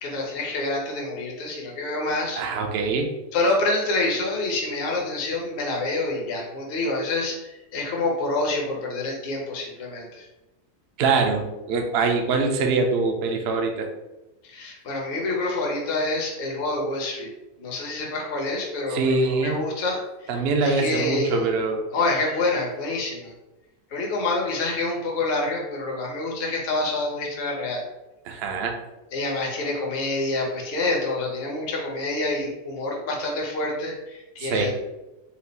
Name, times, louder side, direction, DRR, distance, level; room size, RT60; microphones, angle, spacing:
voice 1, 0.0-2.4 3.3-10.2 14.5-17.3 17.6-20.3 20.6-21.4 21.9-23.3 23.9-27.8 29.1-34.7, left 2 dB, 45° left, -1 dB, 1.0 m, -27 dB
voice 2, 2.4-3.1 11.0-13.9 18.9-19.6 20.3-21.9 28.3-28.8 34.4-34.7, right 4 dB, 60° right, 3 dB, 0.7 m, -23 dB
4.3 x 2.4 x 4.0 m, 1.0 s
omnidirectional pair, 1.6 m